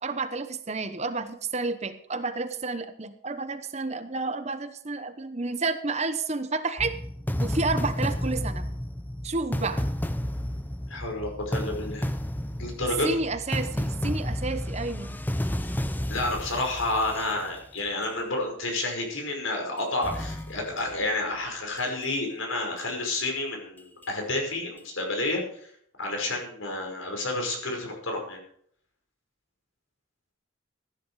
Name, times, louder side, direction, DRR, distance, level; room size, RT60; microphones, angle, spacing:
voice 1, 0.0-7.0 7.4-8.7 9.2-9.8 13.0-15.2, right 3 dB, 35° right, 10 dB, 1.0 m, -30 dB
sound 1, 6.8-18.1 18.8-18.9 19.8-21.0 21.8-22.1 22.8-22.9 23.8-24.1 24.8-24.9, equal, 10° left, 0.6 m, -31 dB
voice 2, 10.9-12.1 12.6-13.1 16.1-25.4 26.0-28.4, left 2 dB, 80° left, 2 dB, 5.5 m, -30 dB
15.5 x 10.5 x 4.9 m, 0.64 s
head